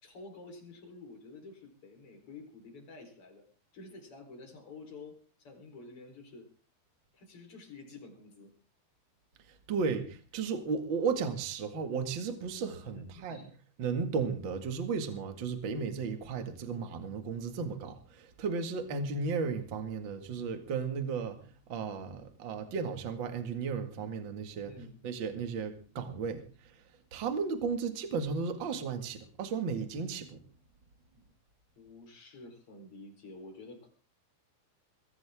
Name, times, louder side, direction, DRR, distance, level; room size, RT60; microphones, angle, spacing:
voice 1, 0.0-3.5 3.7-6.5 7.1-8.5 13.1-13.5 24.7-25.0 31.8-33.9, left 3 dB, 30° left, 4.7 m, -50 dB
voice 2, 9.5-13.4 13.8-24.7 25.0-26.8 27.1-30.4, right 5 dB, 45° right, 1.6 m, -34 dB
21.5 x 16.5 x 3.7 m
omnidirectional pair, 5.3 m